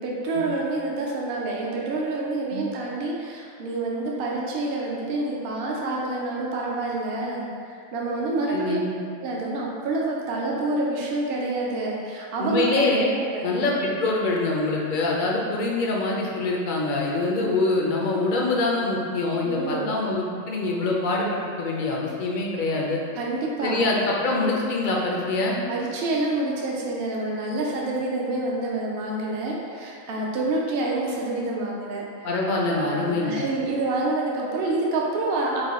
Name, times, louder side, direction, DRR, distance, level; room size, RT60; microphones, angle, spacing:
voice 1, 0.0-8.8 9.2-12.7 13.1-13.5 19.4-20.0 23.2-23.8 25.7-32.3 32.7-35.6, right 2 dB, 55° right, -3 dB, 0.7 m, -27 dB
voice 2, 8.5-8.9 12.4-13.1 13.4-23.0 23.6-25.6 32.2-33.5, left 2 dB, 55° left, -2 dB, 0.6 m, -24 dB
4.7 x 2.2 x 4.1 m, 2.3 s
omnidirectional pair, 1.4 m